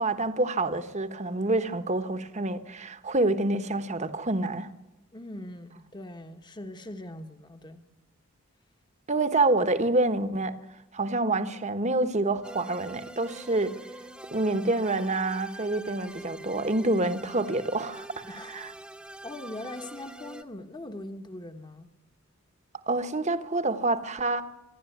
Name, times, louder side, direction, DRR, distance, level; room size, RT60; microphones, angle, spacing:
voice 1, 0.0-4.7 9.1-10.5 10.9-13.7 14.3-18.7 22.9-24.4, right 2 dB, 35° right, 1.2 m, -27 dB
voice 2, 5.1-7.8 18.2-18.6 19.2-21.9, left 1 dB, 20° left, 1.2 m, -41 dB
sound 1, 12.4-20.4, right 1 dB, 5° right, 1.1 m, -44 dB
26.0 x 11.5 x 9.3 m
head